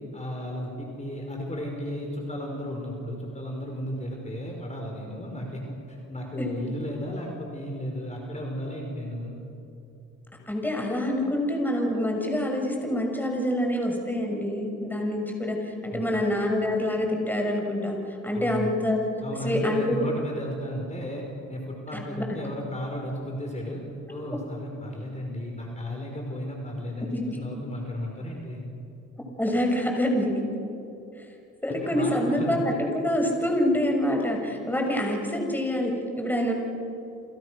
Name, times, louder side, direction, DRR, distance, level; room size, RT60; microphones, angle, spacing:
voice 1, 0.1-9.4 15.9-16.2 18.3-18.7 19.2-23.8 24.1-28.6 31.7-32.8, equal, 25° left, 0 dB, 5.5 m, -34 dB
voice 2, 6.4-6.7 10.5-18.0 18.2-19.0 19.4-20.1 21.9-22.2 24.3-24.4 27.1-27.4 29.4-30.3 31.6-32.6 32.9-36.5, left 1 dB, 5° left, 1 dB, 6.3 m, -26 dB
29.5 x 28.0 x 6.6 m, 2.8 s
cardioid pair, 90°, 30 cm